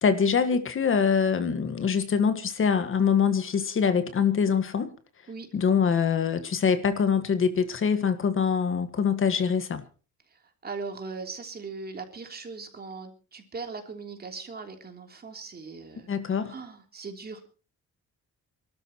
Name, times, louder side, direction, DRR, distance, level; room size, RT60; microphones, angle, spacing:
voice 1, 0.0-4.9 5.5-9.8 16.1-16.5, left 6 dB, 45° left, 1.7 m, -24 dB
voice 2, 10.3-16.1 16.5-17.5, right 4 dB, 30° right, 3.3 m, -39 dB
28.0 x 13.0 x 3.0 m
cardioid pair, 150°, 30 cm